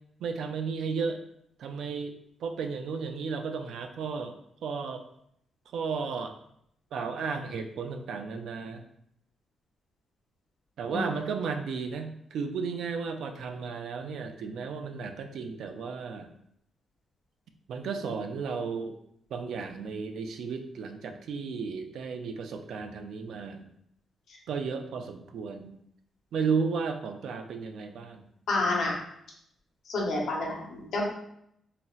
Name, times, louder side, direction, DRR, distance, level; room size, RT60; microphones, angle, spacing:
voice 1, 0.2-1.2 1.6-2.2 2.4-5.0 5.7-6.3 6.9-8.8 10.8-16.3 17.7-19.0 19.3-23.7 24.5-25.8 26.3-28.3, right 5 dB, 80° right, 6 dB, 0.3 m, -34 dB
voice 2, 28.5-29.0 29.9-31.0, left 2 dB, 80° left, -1 dB, 0.8 m, -29 dB
4.0 x 2.0 x 2.3 m, 0.73 s
cardioid pair, 120°, 0 cm